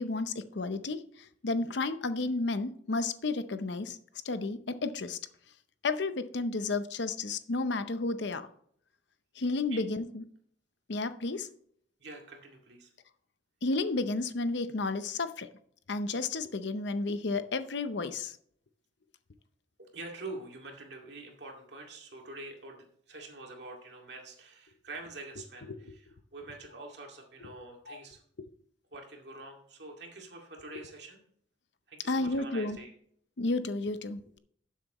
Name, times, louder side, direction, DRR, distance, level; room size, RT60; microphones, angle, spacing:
voice 1, 0.0-4.0 4.2-5.2 5.8-8.5 9.4-10.2 10.9-11.5 13.6-15.5 15.9-18.4 25.7-25.9 27.9-28.0 32.1-32.8 33.4-34.4, left 3 dB, 65° left, 11 dB, 0.7 m, -32 dB
voice 2, 12.0-12.9 19.8-28.2 28.9-31.2 31.9-32.9, right 2 dB, 60° right, 1 dB, 2.2 m, -46 dB
12.0 x 7.5 x 3.0 m, 0.64 s
head